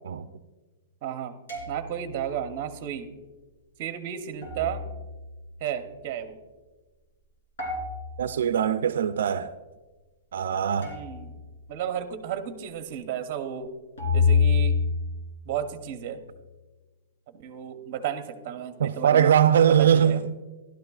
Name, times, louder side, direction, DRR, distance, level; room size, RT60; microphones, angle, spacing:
voice 1, 1.0-1.3 1.7-3.1 3.8-4.8 5.6-6.4 10.8-11.3 11.7-13.7 14.1-14.8 15.4-16.2 17.3-19.3 19.7-20.2, right 9 dB, 30° right, 0.8 m, -33 dB
sound 1, 1.5-2.4 4.4-6.0 7.6-8.9 10.8-11.9 14.0-16.1, left 5 dB, 75° left, 3.4 m, -28 dB
voice 2, 8.2-9.5 10.3-10.9 18.8-20.3, right 9 dB, 70° right, 0.3 m, -21 dB
13.5 x 11.5 x 2.3 m
hypercardioid pair, 175°, 0 cm